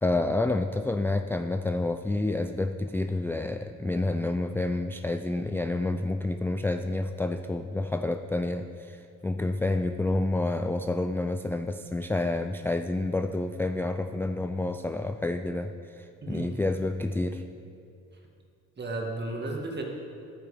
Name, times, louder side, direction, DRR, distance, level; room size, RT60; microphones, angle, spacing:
voice 1, 0.0-17.4, left 2 dB, 10° left, 8 dB, 0.3 m, -29 dB
voice 2, 16.2-16.5 18.8-19.8, right 2 dB, 35° right, 1 dB, 2.0 m, -33 dB
11.0 x 8.8 x 5.0 m, 2.6 s
cardioid pair, 90°, 30 cm